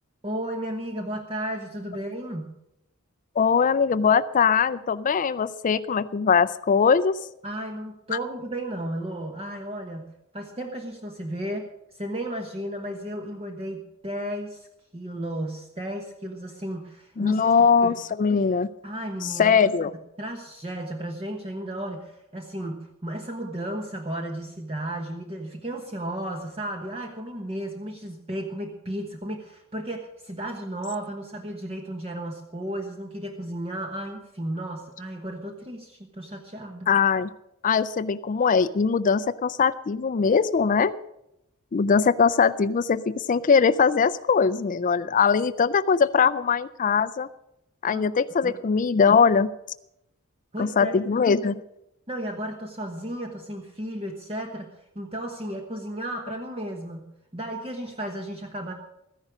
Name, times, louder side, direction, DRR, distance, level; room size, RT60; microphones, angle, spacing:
voice 1, 0.2-2.6 7.4-14.7 14.9-17.5 17.8-18.0 18.8-19.7 20.2-36.9 47.9-48.1 48.4-48.5 50.5-51.2 52.1-58.7, right 1 dB, 30° right, 3 dB, 1.2 m, -34 dB
voice 2, 3.4-7.1 17.2-18.7 19.4-19.9 36.9-37.3 37.6-40.9 41.7-47.3 47.8-49.5 50.6-51.6, left 6 dB, 40° left, 12 dB, 0.4 m, -21 dB
13.5 x 10.5 x 6.2 m, 0.84 s
head